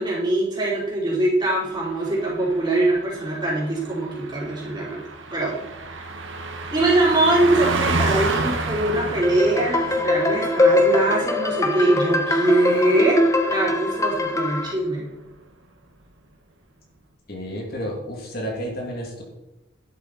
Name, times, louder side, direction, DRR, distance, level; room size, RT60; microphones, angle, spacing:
voice 1, 0.0-5.0 5.3-5.6 5.9-6.1 6.7-15.1, right 2 dB, 20° right, -5 dB, 4.1 m, -22 dB
Car passing by, 1.8-13.7 14.0-14.3, right 3 dB, 70° right, 1.7 m, -31 dB
sound 1, 9.2-14.7, left 2 dB, 15° left, 1.0 m, -22 dB
voice 2, 17.3-19.2, equal, 50° left, -1 dB, 2.8 m, -31 dB
12.0 x 11.5 x 4.3 m, 0.95 s
head